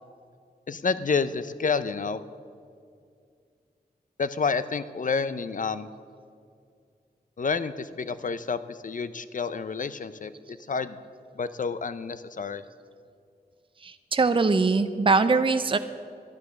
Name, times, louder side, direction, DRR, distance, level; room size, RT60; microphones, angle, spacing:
voice 1, 0.7-2.2 4.2-5.9 7.4-11.0 11.3-12.6, left 5 dB, 55° left, 14 dB, 0.6 m, -29 dB
voice 2, 13.8-15.8, right 4 dB, 30° right, 10 dB, 0.6 m, -22 dB
12.0 x 10.5 x 6.4 m, 2.3 s
wide cardioid pair, 65°, 17 cm